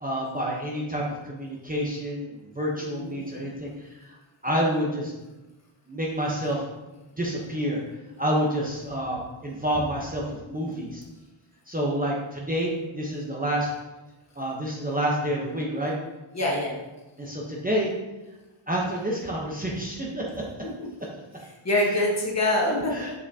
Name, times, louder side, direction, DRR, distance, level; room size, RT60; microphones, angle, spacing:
voice 1, 0.0-3.7 4.4-5.1 5.9-6.6 7.2-7.8 8.2-11.0 11.7-13.7 14.4-15.9 17.2-17.9 18.7-20.4 22.7-23.1, equal, 15° right, -3 dB, 0.9 m, -28 dB
voice 2, 2.7-3.2 16.3-16.8 20.6-20.9 21.4-23.0, left 1 dB, 30° left, -3 dB, 1.4 m, -26 dB
6.8 x 5.7 x 2.8 m, 1.1 s
wide cardioid pair, 145°, 49 cm